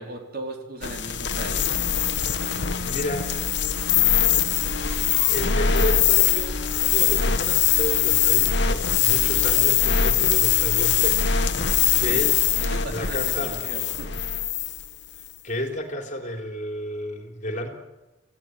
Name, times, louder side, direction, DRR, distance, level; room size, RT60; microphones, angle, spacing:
voice 1, 0.0-1.7 12.1-12.3 12.6-14.1, right 1 dB, 50° right, 2 dB, 4.6 m, -37 dB
sound 1, 0.8-14.9, left 9 dB, 65° left, 1.4 m, -22 dB
voice 2, 2.8-3.5 5.3-12.4 12.9-13.6 15.4-17.7, equal, 40° left, 4 dB, 3.8 m, -32 dB
28.5 x 16.5 x 9.7 m, 1.1 s
head